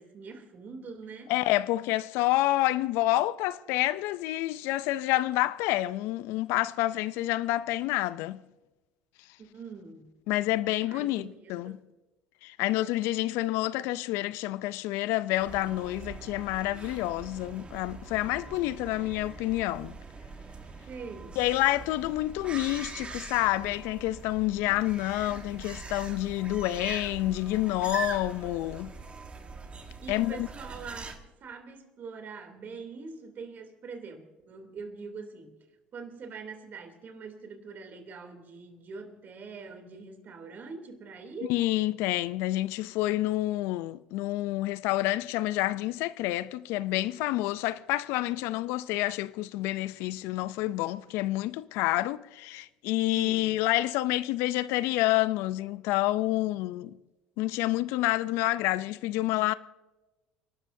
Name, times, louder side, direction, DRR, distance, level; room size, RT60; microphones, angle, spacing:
voice 1, 0.0-1.3 9.4-10.1 10.9-11.8 20.9-21.4 30.0-35.5 35.9-41.5 53.1-53.5, right 4 dB, 45° right, 3.0 m, -43 dB
voice 2, 1.3-8.4 10.3-11.8 12.4-20.0 21.4-28.9 30.1-30.5 41.4-56.9 57.4-59.5, left 16 dB, 70° left, 0.5 m, -28 dB
sound 1, 15.4-31.2, right 4 dB, 25° right, 1.9 m, -43 dB
29.0 x 12.5 x 2.7 m
supercardioid pair, 85°, 4 cm